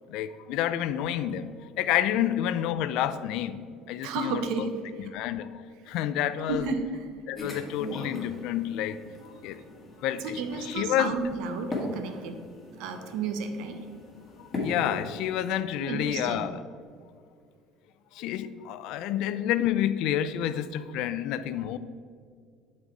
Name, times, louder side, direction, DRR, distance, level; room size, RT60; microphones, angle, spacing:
voice 1, 0.1-3.6 3.9-4.7 5.0-5.6 5.9-6.7 7.3-9.0 9.2-9.6 10.0-11.3 14.4-16.5 18.1-21.8, left 11 dB, 70° left, 14 dB, 0.4 m, -29 dB
voice 2, 4.0-5.1 6.5-7.2 10.2-12.5 12.8-14.0 15.8-16.5, right 4 dB, 75° right, 7 dB, 1.0 m, -33 dB
sound 1, 7.4-15.6, left 2 dB, 20° left, 1.9 m, -40 dB
10.5 x 4.2 x 4.6 m, 2.2 s
cardioid pair, 120°, 0 cm